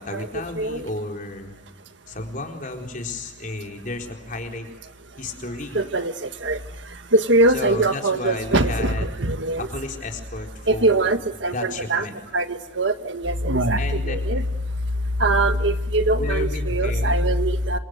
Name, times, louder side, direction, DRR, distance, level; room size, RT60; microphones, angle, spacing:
voice 1, 0.0-1.6 2.1-4.7 5.2-5.8 7.5-9.1 9.6-11.2 11.5-12.2 13.8-14.2 16.1-17.3, left 2 dB, 45° left, 2 dB, 4.2 m, -32 dB
voice 2, 5.7-6.6 7.1-9.7 10.7-12.0 12.3-14.4 15.2-17.8, right 2 dB, 80° right, 9 dB, 1.7 m, -22 dB
27.5 x 26.5 x 8.1 m, 0.91 s
head